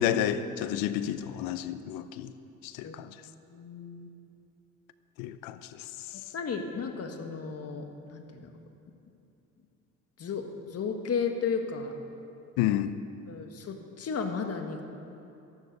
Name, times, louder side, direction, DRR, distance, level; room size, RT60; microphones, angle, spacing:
voice 1, 0.0-2.3 2.6-3.1 5.2-6.2 12.6-12.9, left 11 dB, 90° left, 13 dB, 0.7 m, -30 dB
voice 2, 3.5-4.1 6.3-8.5 10.2-11.9 13.3-14.8, left 5 dB, 45° left, 5 dB, 1.6 m, -34 dB
13.5 x 11.0 x 6.6 m, 2.8 s
cardioid pair, 95°, 33 cm